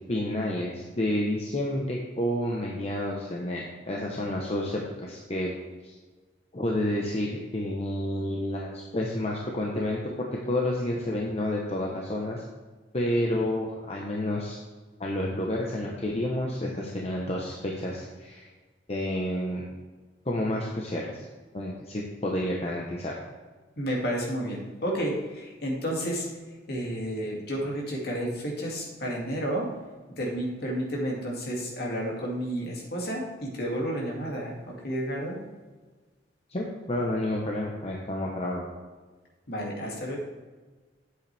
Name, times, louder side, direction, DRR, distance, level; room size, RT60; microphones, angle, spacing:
voice 1, 0.1-5.5 5.8-5.9 6.5-12.4 12.9-14.6 15.0-18.5 18.9-19.6 20.2-21.2 21.5-23.2 36.5-38.7, left 1 dB, 35° left, -2 dB, 1.0 m, -30 dB
voice 2, 23.8-26.3 26.7-29.7 30.2-35.4 39.5-40.2, equal, 55° left, -2 dB, 2.4 m, -31 dB
9.7 x 8.0 x 3.4 m, 1.3 s
head